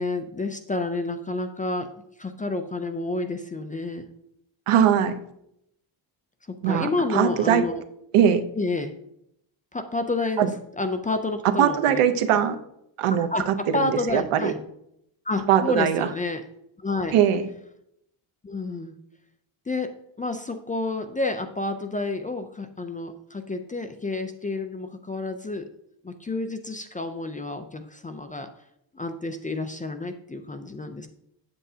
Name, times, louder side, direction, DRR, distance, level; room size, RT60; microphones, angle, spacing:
voice 1, 0.0-1.9 2.2-4.1 6.5-7.8 8.6-8.9 9.7-10.5 10.8-12.0 13.1-14.6 15.3-16.4 16.8-17.1 18.4-19.0 19.7-19.9 20.2-25.7 26.0-28.5 28.9-31.1, left 2 dB, 20° left, 7 dB, 0.3 m, -29 dB
voice 2, 4.7-5.2 6.6-7.6 8.1-8.4 10.4-10.5 11.6-12.6 13.0-14.5 15.5-16.1 17.1-17.4, right 9 dB, 85° right, 10 dB, 0.8 m, -21 dB
8.4 x 7.9 x 2.7 m, 0.77 s
cardioid pair, 120°, 50 cm